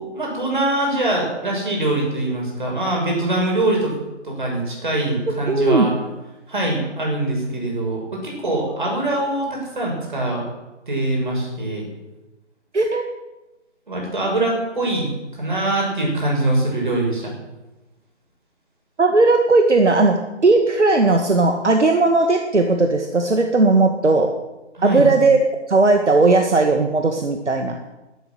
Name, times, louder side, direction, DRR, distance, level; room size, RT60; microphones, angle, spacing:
voice 1, 0.0-4.0 4.2-5.9 6.5-10.5 10.9-11.9 13.9-15.1 15.4-17.3 24.7-25.1, right 1 dB, 40° right, -1 dB, 6.8 m, -23 dB
voice 2, 5.5-5.9 12.7-13.0 19.0-24.3 24.8-27.8, right 3 dB, 70° right, 4 dB, 2.1 m, -17 dB
13.5 x 12.5 x 7.7 m, 1.1 s
figure-of-eight pair, 180°, 36 cm